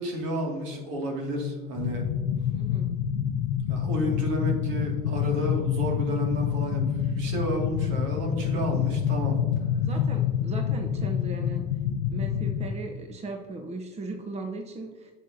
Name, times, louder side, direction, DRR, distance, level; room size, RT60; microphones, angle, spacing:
voice 1, 0.0-2.0 3.7-9.4, equal, 65° right, 1 dB, 2.2 m, -31 dB
sound 1, 1.8-12.7, left 9 dB, 80° left, 0.6 m, -27 dB
voice 2, 2.5-2.9 8.5-8.6 9.8-11.6 12.1-15.1, right 2 dB, 30° right, 3 dB, 1.0 m, -37 dB
9.1 x 6.7 x 2.7 m, 1.4 s
hypercardioid pair, 80°, 21 cm